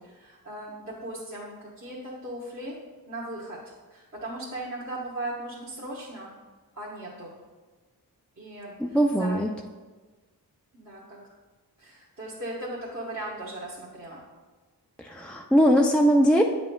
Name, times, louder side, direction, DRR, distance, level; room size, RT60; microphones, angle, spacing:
voice 1, 0.0-2.7 3.1-3.6 3.9-6.3 6.7-7.3 8.4-9.5 10.7-11.2 11.8-14.2, right 1 dB, 45° right, -7 dB, 1.3 m, -38 dB
voice 2, 8.9-9.5 15.0-16.4, equal, 5° left, 1 dB, 0.3 m, -20 dB
8.7 x 5.8 x 2.3 m, 1.3 s
wide cardioid pair, 65°, 39 cm